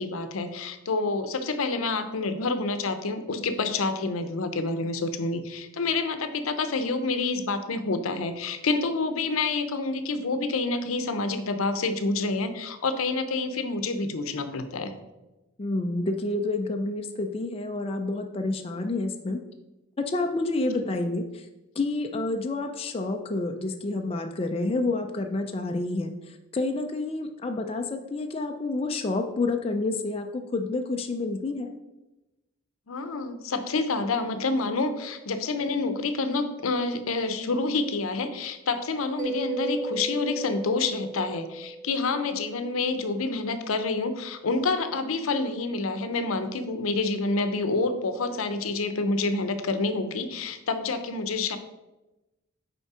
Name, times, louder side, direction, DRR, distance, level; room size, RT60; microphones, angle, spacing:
voice 1, 0.0-14.9 20.7-20.8 32.9-51.6, left 3 dB, 90° left, 9 dB, 0.6 m, -28 dB
voice 2, 15.6-19.4 20.1-21.5 21.8-31.7, left 2 dB, 30° left, 4 dB, 0.4 m, -29 dB
Mallet percussion, 39.2-42.7, right 3 dB, 40° right, 1.0 m, -35 dB
5.4 x 4.4 x 4.8 m, 1.0 s
head